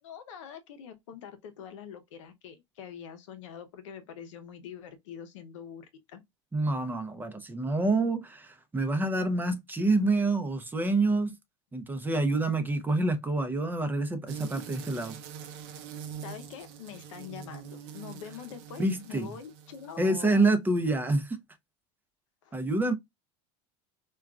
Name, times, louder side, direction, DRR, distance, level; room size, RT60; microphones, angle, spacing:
voice 1, 0.0-6.2 16.2-20.5 22.4-22.6, left 8 dB, 90° left, 0.6 m, -44 dB
voice 2, 6.5-11.3 11.7-15.2 18.8-19.3 20.0-21.4 22.5-22.9, right 2 dB, 10° right, 0.5 m, -27 dB
sound 1, 14.3-20.3, right 8 dB, 70° right, 0.6 m, -44 dB
3.5 x 2.2 x 2.3 m
supercardioid pair, 110°, 16 cm